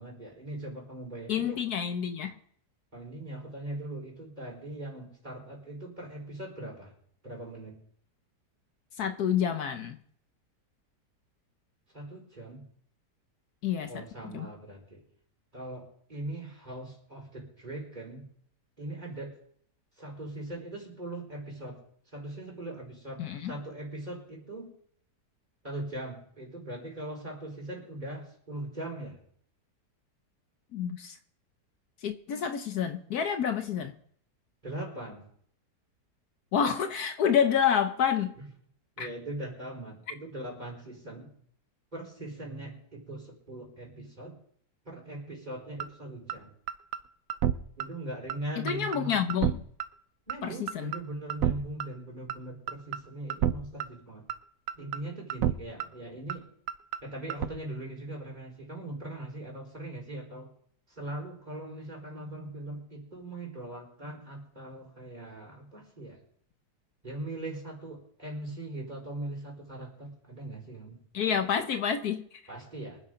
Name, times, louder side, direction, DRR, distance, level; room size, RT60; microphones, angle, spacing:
voice 1, 0.0-1.6 2.9-6.9 7.2-7.8 11.9-12.6 13.9-15.0 15.5-18.3 18.8-19.3 20.0-21.8 22.1-24.7 25.6-29.2 34.6-35.3 39.0-41.4 41.9-44.4 44.8-46.5 47.8-49.2 50.3-54.2 54.8-56.4 57.0-60.5 60.9-66.2 67.0-71.0 72.5-73.0, right 1 dB, 25° right, 4.5 m, -40 dB
voice 2, 1.3-2.3 9.0-10.0 13.6-14.5 23.2-23.5 30.7-31.2 32.0-33.9 36.5-38.3 39.0-39.1 48.6-49.6 50.4-50.9 71.1-72.4, left 8 dB, 70° left, 1.3 m, -28 dB
sound 1, 45.8-45.9 46.3-46.4 46.7-47.0 47.3-47.5 47.8-47.9 48.3-48.4 48.7-49.0 49.3-49.5 49.8-49.9 50.3-50.4 50.7-51.0 51.3-51.5 51.8-51.9 52.3-52.4 52.7-53.0 53.3-53.5 53.8-53.9 54.3-54.4 54.7-55.0 55.3-55.5 55.8-55.9 56.3-56.4 56.7-57.0 57.3-57.5, right 11 dB, 65° right, 1.0 m, -28 dB
24.0 x 9.8 x 3.8 m
omnidirectional pair, 1.8 m